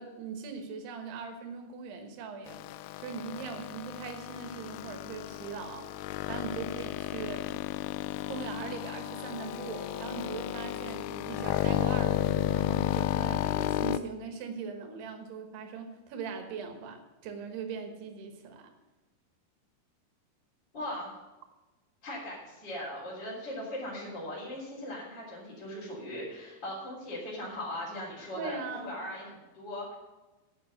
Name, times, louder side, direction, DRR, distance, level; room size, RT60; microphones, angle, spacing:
voice 1, 0.0-2.6 3.0-7.7 8.3-18.7 28.3-29.0, right 5 dB, 90° right, 5 dB, 3.4 m, -40 dB
sound 1, 2.5-14.0, left 13 dB, 90° left, 2.6 m, -33 dB
voice 2, 20.7-21.1 22.0-29.9, left 1 dB, 25° left, -6 dB, 3.8 m, -39 dB
11.0 x 8.1 x 6.4 m, 1.1 s
omnidirectional pair, 4.6 m